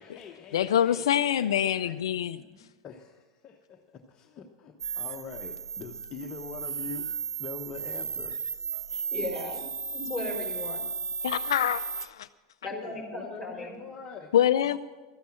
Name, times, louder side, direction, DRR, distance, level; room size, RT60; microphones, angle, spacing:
voice 1, 0.0-2.0 2.4-7.1 7.4-8.4 12.7-14.3 14.6-14.8, left 6 dB, 30° left, 2 dB, 1.1 m, -44 dB
voice 2, 0.5-2.4 11.2-12.3 14.3-14.8, left 10 dB, 75° left, 12 dB, 0.4 m, -25 dB
sound 1, 4.8-12.1, right 5 dB, 90° right, 0.6 m, -35 dB
voice 3, 9.1-9.6 9.9-10.8 12.6-13.7, left 2 dB, ahead, -1 dB, 5.4 m, -36 dB
13.5 x 10.5 x 7.5 m, 1.3 s
hypercardioid pair, 100°, 3 cm